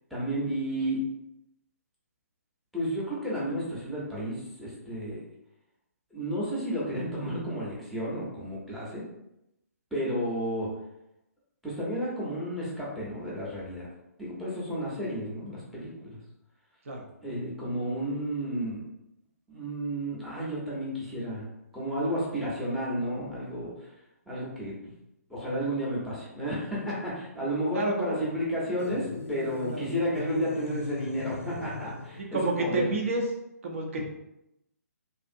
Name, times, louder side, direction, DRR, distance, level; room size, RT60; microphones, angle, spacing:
voice 1, 0.1-1.0 2.7-5.2 6.1-9.0 9.9-10.7 11.6-13.9 14.2-16.2 17.2-18.8 19.5-21.4 21.7-23.7 24.3-24.7 25.3-32.9, equal, ahead, -7 dB, 0.7 m, -32 dB
voice 2, 27.7-28.2 29.7-29.9 32.2-33.2 33.6-34.0, right 3 dB, 50° right, 1 dB, 0.6 m, -29 dB
sound 1, 28.8-32.3, left 3 dB, 50° left, 0.4 m, -39 dB
2.6 x 2.4 x 2.5 m, 0.87 s
figure-of-eight pair, 135°, 9 cm